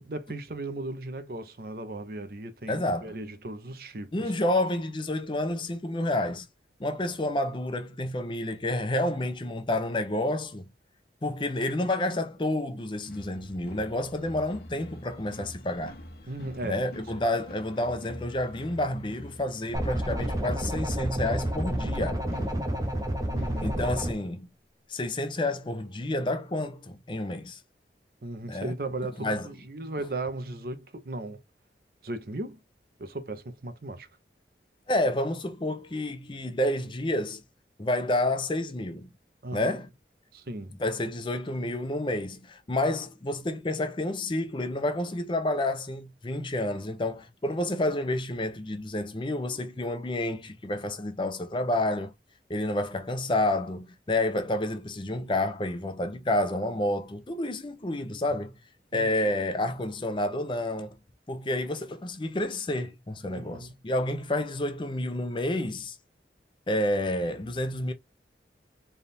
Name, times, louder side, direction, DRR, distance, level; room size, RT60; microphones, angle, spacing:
voice 1, 0.0-4.3 16.3-16.8 23.3-23.8 28.2-31.4 32.0-32.6 33.0-34.1 39.4-39.8 40.3-40.8 58.9-59.3 63.3-63.7, right 2 dB, 55° right, 0.6 m, -37 dB
voice 2, 2.7-3.1 4.1-6.5 6.8-10.7 11.2-15.9 16.6-22.2 23.6-24.5 24.9-27.6 28.5-28.7 29.2-29.5 34.9-37.4 37.8-39.1 39.5-39.9 40.8-52.1 52.5-58.5 58.9-61.0 61.3-66.0 66.7-67.9, left 1 dB, 25° left, 0.6 m, -29 dB
sound 1, 13.0-23.7, equal, 60° left, 0.9 m, -46 dB
sound 2, 19.7-24.1, right 1 dB, 20° right, 0.7 m, -30 dB
3.5 x 2.4 x 4.1 m
head